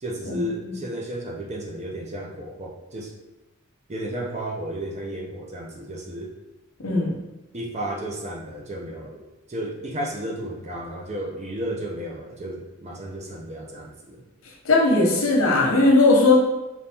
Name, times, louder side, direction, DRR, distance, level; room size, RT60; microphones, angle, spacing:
voice 1, 0.0-3.1 3.9-6.3 7.5-14.2, right 1 dB, 35° right, -1 dB, 0.7 m, -33 dB
voice 2, 6.8-7.1 14.6-16.4, left 2 dB, 80° left, -1 dB, 1.0 m, -18 dB
4.1 x 3.1 x 3.5 m, 1.1 s
head